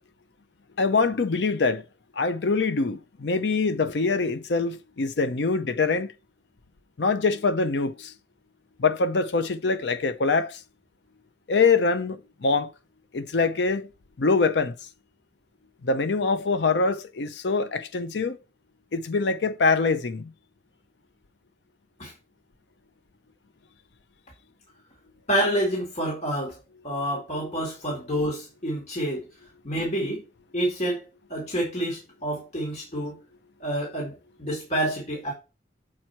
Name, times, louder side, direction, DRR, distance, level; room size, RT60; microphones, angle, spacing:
voice 1, 0.8-1.8 2.2-6.1 7.0-8.1 8.8-10.6 11.5-12.7 13.1-13.9 14.2-14.7 15.8-18.4 18.9-20.3 27.4-27.6, left 4 dB, 75° left, 0.6 m, -24 dB
voice 2, 25.3-26.6 26.8-29.2 29.6-30.2 30.5-31.0 31.3-33.2 33.6-35.3, right 1 dB, 40° left, 2.3 m, -28 dB
7.4 x 4.5 x 4.5 m
head